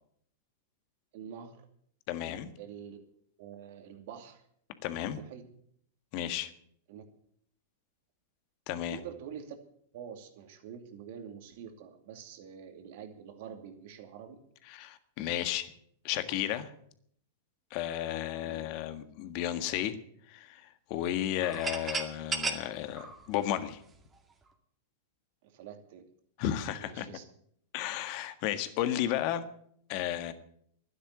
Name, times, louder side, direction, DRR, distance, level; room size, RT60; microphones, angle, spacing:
voice 1, 1.1-1.6 2.6-3.0 3.4-4.4 5.0-5.4 6.9-7.0 8.9-9.6 9.9-14.4 18.4-18.6 25.4-26.0 26.8-27.2, right 8 dB, 60° right, 6 dB, 2.5 m, -46 dB
voice 2, 2.1-2.5 4.8-5.2 6.1-6.5 8.7-9.0 14.7-15.7 16.0-16.7 17.7-20.0 20.3-23.8 26.4-27.1 27.7-29.4 29.9-30.3, left 12 dB, 50° left, 10 dB, 1.7 m, -33 dB
sound 1, 21.4-24.2, right 4 dB, 20° right, 2.3 m, -35 dB
12.0 x 10.0 x 8.9 m, 0.66 s
hypercardioid pair, 105°, 0 cm